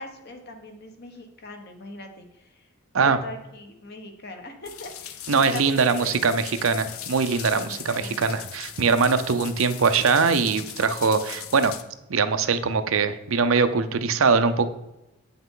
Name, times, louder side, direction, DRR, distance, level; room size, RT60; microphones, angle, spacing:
voice 1, 0.0-2.7 3.0-6.2 7.5-8.4, left 2 dB, 50° left, 5 dB, 1.1 m, -41 dB
sound 1, 4.6-11.8, left 10 dB, 80° left, 0.6 m, -39 dB
voice 2, 5.3-11.7 12.1-14.7, right 5 dB, 70° right, 10 dB, 0.6 m, -22 dB
8.5 x 5.7 x 3.8 m, 0.92 s
head